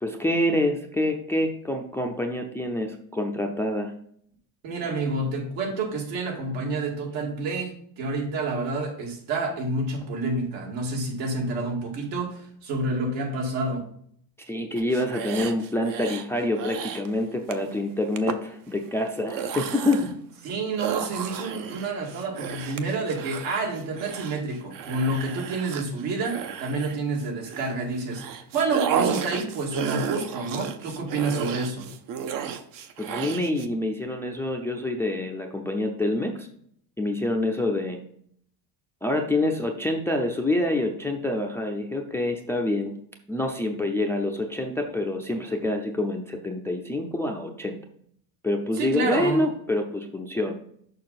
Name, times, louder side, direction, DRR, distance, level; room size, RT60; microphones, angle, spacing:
voice 1, 0.0-3.9 14.5-20.1 33.0-36.5 37.0-38.0 39.0-42.9 43.3-47.8 48.4-50.5, left 1 dB, 5° left, 3 dB, 0.5 m, -26 dB
voice 2, 4.6-13.9 20.4-31.9 48.8-49.5, right 3 dB, 70° right, 0 dB, 2.4 m, -29 dB
sound 1, 14.8-16.3 16.6-17.1 17.5-17.7 18.2-18.4 19.1-20.2 20.8-27.7 28.1-33.7, right 7 dB, 45° right, 0.7 m, -32 dB
6.7 x 5.4 x 4.1 m, 0.64 s
cardioid pair, 135°, 46 cm